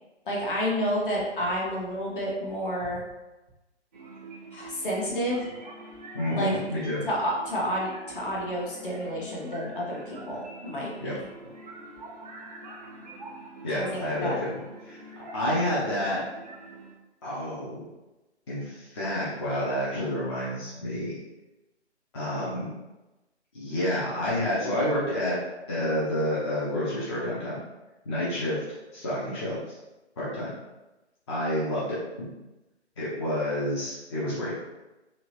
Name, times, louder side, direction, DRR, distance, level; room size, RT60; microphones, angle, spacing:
voice 1, 0.3-3.0 4.5-5.4 6.4-6.5 7.1-11.2 13.7-14.4, equal, 50° left, -4 dB, 1.2 m, -30 dB
sound 1, 3.9-17.0, right 2 dB, 35° right, 0.5 m, -45 dB
voice 2, 6.1-7.1 11.0-11.1 13.6-15.0 15.3-16.2 17.2-17.8 18.5-21.1 22.1-22.7 23.5-25.4 25.7-27.6 28.1-28.6 28.9-29.8 30.2-30.5 31.3-32.3 33.0-34.5, left 1 dB, 25° left, -9 dB, 0.6 m, -29 dB
3.0 x 2.9 x 2.8 m, 1.0 s
figure-of-eight pair, 140°, 35 cm